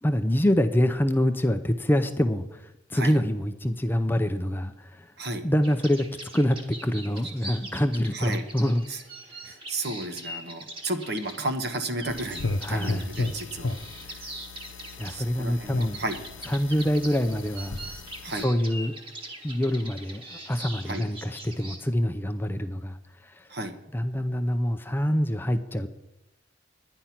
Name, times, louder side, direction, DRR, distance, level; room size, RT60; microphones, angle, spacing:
voice 1, 0.0-5.1 5.4-6.1 6.3-8.8 12.6-13.0 15.0-16.0 16.5-17.8 18.4-19.0 19.4-23.0 23.2-23.5 23.9-25.9, equal, 10° left, 8 dB, 0.5 m, -25 dB
sound 1, 5.6-21.8, right 1 dB, 25° right, 1.5 m, -42 dB
voice 2, 8.1-8.5 8.9-9.0 9.4-13.8 14.1-14.2 15.1-16.2 18.2-18.5 20.8-21.0 23.5-23.7, right 2 dB, 55° right, 7 dB, 1.2 m, -33 dB
sound 2, 12.1-18.4, left 2 dB, 75° left, 0.7 m, -35 dB
11.0 x 9.9 x 5.8 m, 0.93 s
head